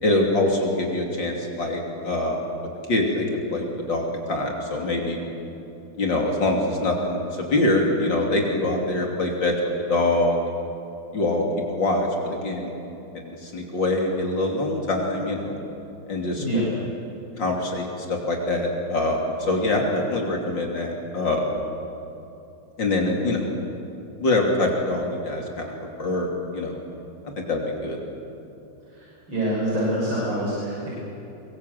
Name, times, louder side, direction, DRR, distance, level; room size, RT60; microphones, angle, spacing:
voice 1, 0.0-2.4 2.9-5.2 6.0-10.4 11.1-12.7 13.1-15.6 16.1-16.5 17.4-21.6 22.8-23.6 24.2-25.7 26.0-26.3 26.5-26.8 27.4-28.0, left 2 dB, 60° left, 0 dB, 3.6 m, -24 dB
voice 2, 28.9-30.9, right 1 dB, 65° right, -7 dB, 6.9 m, -26 dB
23.5 x 23.5 x 7.8 m, 2.9 s
omnidirectional pair, 2.3 m